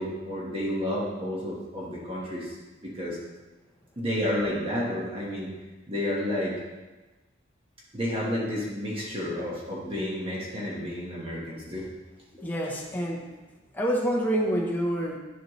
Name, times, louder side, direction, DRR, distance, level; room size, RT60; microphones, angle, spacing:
voice 1, 0.0-2.6 2.8-3.2 4.0-5.5 5.9-6.5 7.9-11.9 12.4-12.5, left 1 dB, 30° right, -5 dB, 1.5 m, -31 dB
voice 2, 12.4-13.2 13.7-15.2, equal, 10° left, -2 dB, 0.9 m, -27 dB
11.0 x 5.7 x 3.1 m, 1.2 s
head